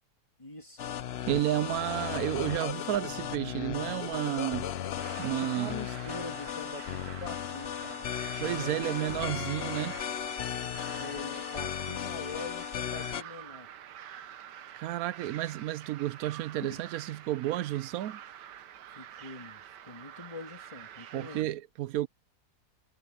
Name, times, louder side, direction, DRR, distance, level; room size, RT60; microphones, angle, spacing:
voice 1, 0.4-0.9 5.2-8.1 8.6-9.0 11.0-13.7 16.6-16.8 19.0-21.5, left 3 dB, 20° left, 2.2 m, -44 dB
sound 1, 0.8-13.2, left 10 dB, 65° left, 0.6 m, -36 dB
voice 2, 1.3-4.7 5.2-5.8 8.4-10.0 14.7-18.2 21.1-22.1, right 14 dB, 70° right, 0.9 m, -31 dB
sound 2, 5.0-21.4, right 10 dB, 85° right, 1.6 m, -47 dB
omnidirectional pair, 1.8 m